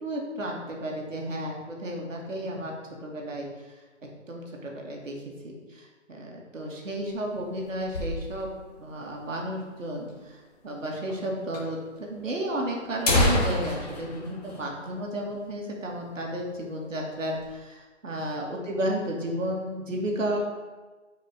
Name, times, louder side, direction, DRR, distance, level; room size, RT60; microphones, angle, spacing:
voice 1, 0.0-2.7 3.0-3.8 4.3-5.2 5.4-8.5 8.8-10.4 10.6-20.4, right 1 dB, 80° right, -1 dB, 1.6 m, -33 dB
sound 1, 6.9-8.7 9.0-9.1 9.3-9.4 10.1-10.2 11.1-11.2 11.5-11.6 12.4-12.5 12.8-15.4 15.7-15.9 16.3-16.5 17.0-17.5, left 1 dB, 30° left, 1.0 m, -28 dB
7.7 x 4.7 x 2.9 m, 1.3 s
hypercardioid pair, 165°, 38 cm